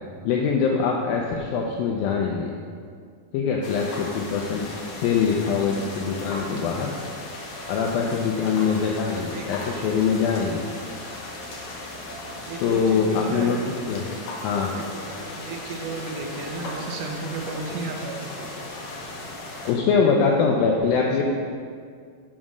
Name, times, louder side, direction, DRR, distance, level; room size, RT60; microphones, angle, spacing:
voice 1, 0.2-2.5 3.3-4.7 5.0-6.9 7.7-10.6 12.6-14.1 14.4-14.7 19.7-21.2, left 5 dB, 80° left, 0 dB, 2.2 m, -23 dB
sound 1, 3.6-19.7, left 2 dB, 60° left, 2.2 m, -37 dB
voice 2, 6.6-7.1 8.3-8.4 9.3-9.5 9.8-9.9 12.5-13.6 14.5-18.2, right 3 dB, 70° right, 0 dB, 2.3 m, -34 dB
7.4 x 7.3 x 6.2 m, 2.2 s
omnidirectional pair, 4.6 m